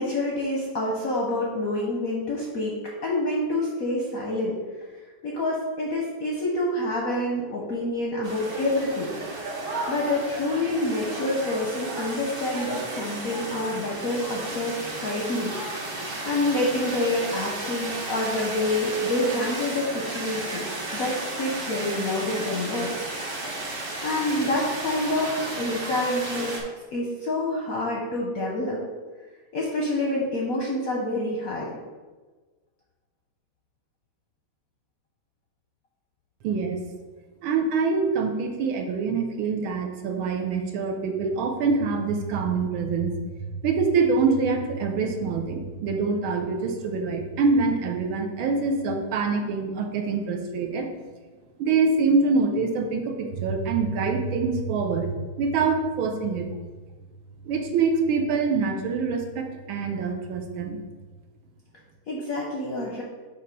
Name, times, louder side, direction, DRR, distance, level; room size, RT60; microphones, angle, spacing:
voice 1, 0.0-2.7 3.0-4.6 5.2-9.2 9.9-15.5 15.9-23.1 24.0-26.6 26.9-28.8 29.5-31.7 62.1-63.0, left 1 dB, 60° left, -3 dB, 0.9 m, -27 dB
sound 1, 8.2-26.6, right 2 dB, 45° right, 0.8 m, -33 dB
voice 2, 36.4-36.8 37.4-43.2 43.6-50.9 51.6-56.5 57.4-60.8, right 4 dB, 75° right, 3 dB, 1.5 m, -25 dB
7.1 x 2.8 x 5.2 m, 1.3 s
omnidirectional pair, 2.3 m